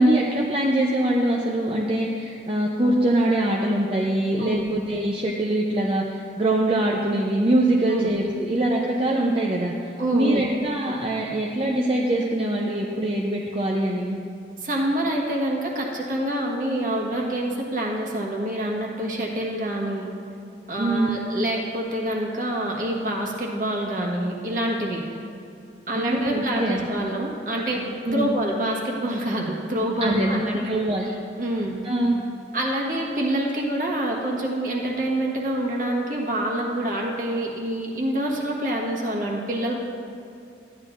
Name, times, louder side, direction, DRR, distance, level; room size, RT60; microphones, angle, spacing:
voice 1, 0.0-9.7 10.1-14.2 20.8-21.2 25.9-26.9 28.1-28.3 30.0-31.1 31.8-32.2, right 1 dB, 30° right, -2 dB, 0.6 m, -23 dB
voice 2, 10.0-10.4 14.6-20.1 20.7-25.2 25.9-30.6 31.0-31.8 32.5-39.8, right 1 dB, 50° right, -2 dB, 1.4 m, -26 dB
13.5 x 9.9 x 2.5 m, 2.5 s
head